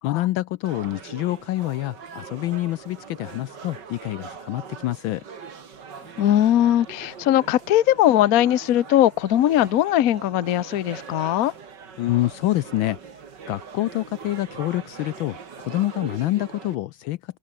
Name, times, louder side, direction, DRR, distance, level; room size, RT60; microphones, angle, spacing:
voice 1, 0.0-5.2 12.0-13.0 13.5-15.4 15.6-17.2, left 16 dB, 75° left, 1.3 m, -26 dB
sound 1, 0.6-16.7, right 6 dB, 55° right, 2.7 m, -42 dB
voice 2, 6.2-11.5, left 12 dB, 55° left, 1.0 m, -20 dB
open air
omnidirectional pair, 2.4 m